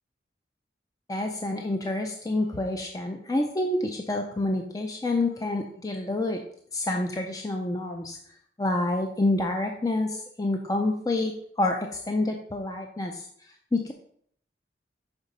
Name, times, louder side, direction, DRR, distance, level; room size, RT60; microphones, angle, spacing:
voice 1, 1.1-6.4 6.7-8.2 8.6-13.3 13.7-13.9, left 2 dB, 20° left, 3 dB, 0.5 m, -28 dB
6.0 x 5.2 x 4.0 m, 0.63 s
head